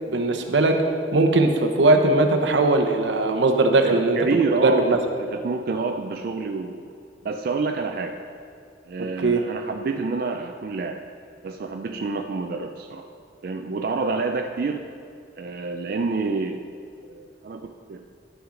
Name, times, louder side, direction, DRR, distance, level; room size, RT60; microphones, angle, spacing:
voice 1, 0.1-0.8 1.1-5.0 9.2-9.4, right 2 dB, 85° right, 5 dB, 0.7 m, -20 dB
voice 2, 3.8-6.8 7.2-8.1 8.9-11.0 11.4-13.1 13.4-14.9 15.4-16.6 17.1-18.0, right 4 dB, 55° right, 4 dB, 0.4 m, -28 dB
11.0 x 5.9 x 3.8 m, 2.4 s
head